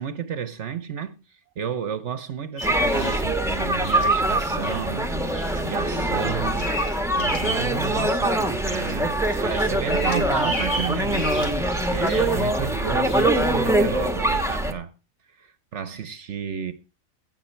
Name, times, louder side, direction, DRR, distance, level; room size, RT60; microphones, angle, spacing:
voice 1, 0.0-5.2 5.5-6.7 7.1-11.5 11.9-14.9 15.3-16.7, right 8 dB, 60° right, 1.1 m, -32 dB
Bird vocalization bird call bird song, 2.6-3.2 3.8-4.1 4.6-4.8 5.3-5.6 5.9-7.7 8.2-8.9 9.2-12.4 13.1-13.3, left 1 dB, 75° left, 3.0 m, -33 dB
sound 1, 2.6-14.7, right 1 dB, ahead, 1.0 m, -23 dB
16.5 x 6.5 x 4.4 m
omnidirectional pair, 1.4 m